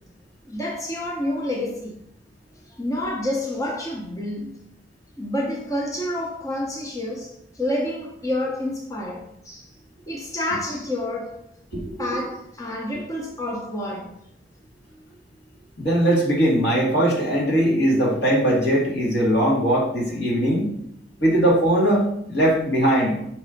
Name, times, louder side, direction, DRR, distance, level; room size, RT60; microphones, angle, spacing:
voice 1, 0.5-2.0 2.7-4.6 5.2-9.7 10.1-11.4 12.0-14.1, left 1 dB, 15° left, -1 dB, 0.6 m, -28 dB
voice 2, 11.7-12.0 15.8-20.7 21.2-23.2, right 1 dB, 70° left, -6 dB, 2.4 m, -20 dB
5.9 x 3.3 x 5.1 m, 0.76 s
head